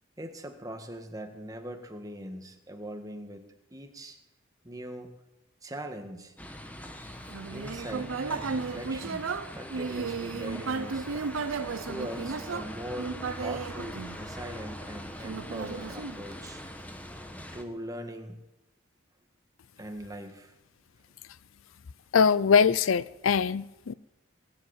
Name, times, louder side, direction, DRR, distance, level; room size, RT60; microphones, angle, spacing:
voice 1, 0.2-4.2 4.6-5.1 5.6-6.3 7.5-11.1 11.8-16.6 17.2-18.4 19.8-20.5, right 1 dB, 15° right, 1.6 m, -41 dB
sound 1, 6.4-17.6, equal, 10° left, 1.2 m, -42 dB
Human voice, 7.3-14.6 15.2-16.7, right 5 dB, 80° right, 0.6 m, -34 dB
voice 2, 22.1-23.9, left 6 dB, 80° left, 0.5 m, -22 dB
20.0 x 8.0 x 8.8 m
head